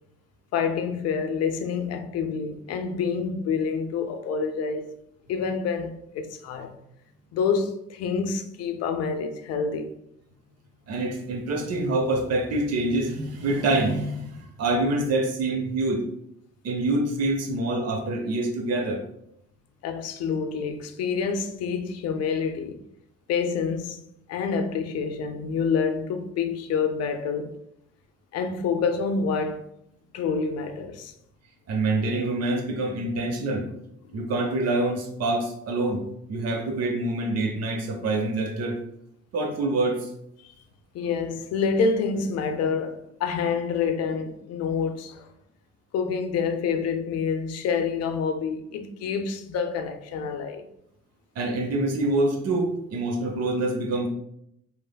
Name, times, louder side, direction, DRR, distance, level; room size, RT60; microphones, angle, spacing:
voice 1, 0.5-4.9 5.3-6.8 7.3-10.0 19.8-22.8 23.3-24.0 24.3-27.6 28.3-29.7 30.1-31.1 34.1-34.2 40.4-40.5 40.9-45.3 45.9-50.7, left 5 dB, 50° left, 0.5 m, -27 dB
voice 2, 10.9-16.0 16.6-19.0 31.7-33.7 34.1-38.8 39.3-40.1 51.4-54.1, right 2 dB, 50° right, 0.7 m, -26 dB
3.1 x 2.1 x 2.2 m
hypercardioid pair, 60°, 32 cm